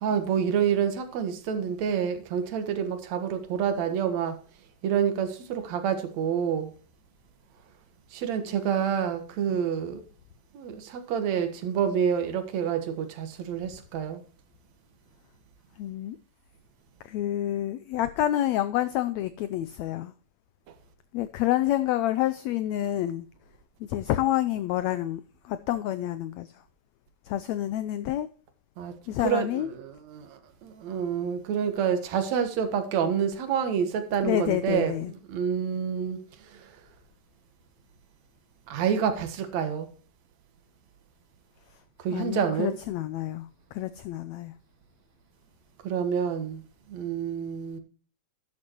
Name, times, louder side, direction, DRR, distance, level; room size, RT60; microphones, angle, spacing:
voice 1, 0.0-4.4 4.8-6.7 8.1-10.0 10.5-14.2 28.8-28.9 29.2-36.7 38.7-39.9 42.0-42.8 45.8-46.6 46.9-47.8, right 8 dB, 60° right, 2.4 m, -28 dB
voice 2, 15.8-16.2 17.0-20.1 21.1-23.3 23.9-26.5 27.3-28.3 29.1-29.7 34.2-35.1 42.1-44.5, left 13 dB, 85° left, 1.5 m, -28 dB
12.0 x 11.0 x 2.9 m
omnidirectional pair, 3.8 m